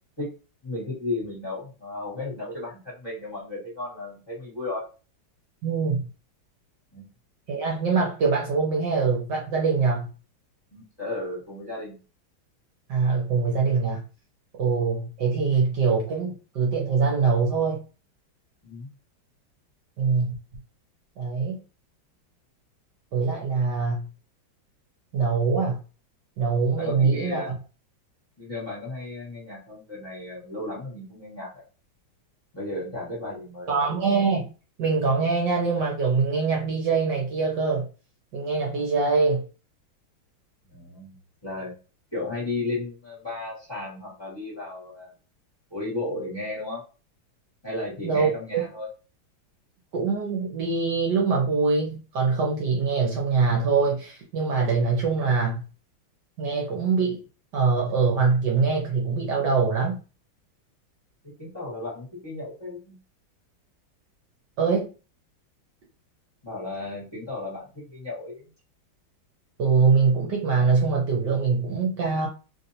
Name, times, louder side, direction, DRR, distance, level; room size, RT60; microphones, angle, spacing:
voice 1, 0.6-4.8 6.9-7.0 10.7-12.0 18.6-18.9 26.7-27.5 28.4-31.6 32.5-33.8 40.6-41.7 42.1-45.1 45.7-46.8 47.6-48.9 61.4-63.0 66.4-68.4, left 2 dB, 15° left, 1.4 m, -34 dB
voice 2, 5.6-6.1 7.5-10.1 12.9-14.0 14.6-17.8 20.0-20.3 21.2-21.6 23.1-24.0 25.1-25.8 26.4-27.4 33.7-34.5 34.8-37.9 38.3-39.4 48.0-48.3 48.5-48.6 49.9-55.6 56.4-57.2 57.5-60.0 64.6-64.9 69.6-72.3, right 4 dB, 65° right, 1.3 m, -23 dB
3.3 x 2.7 x 2.7 m
omnidirectional pair, 2.2 m